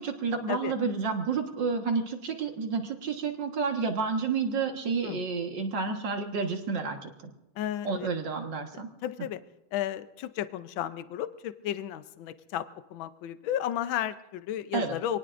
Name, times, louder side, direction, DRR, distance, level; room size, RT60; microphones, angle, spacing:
voice 1, 0.0-7.1 7.8-8.9 14.7-15.0, right 5 dB, 60° right, 4 dB, 2.1 m, -30 dB
voice 2, 7.6-8.1 9.0-9.4 9.7-15.2, left 11 dB, 75° left, 12 dB, 1.5 m, -33 dB
26.5 x 19.0 x 2.6 m, 0.94 s
omnidirectional pair, 2.2 m